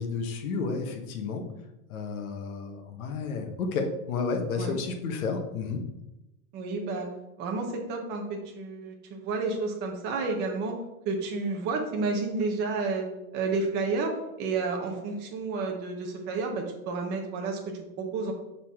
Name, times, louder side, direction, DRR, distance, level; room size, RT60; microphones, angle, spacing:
voice 1, 0.0-1.4 1.9-5.8, left 4 dB, 70° left, 5 dB, 1.3 m, -31 dB
voice 2, 6.5-7.1 7.4-10.8 11.0-13.1 13.3-18.3, right 3 dB, 25° right, 2 dB, 0.9 m, -31 dB
6.4 x 5.6 x 3.7 m, 0.95 s
supercardioid pair, 170°, 45 cm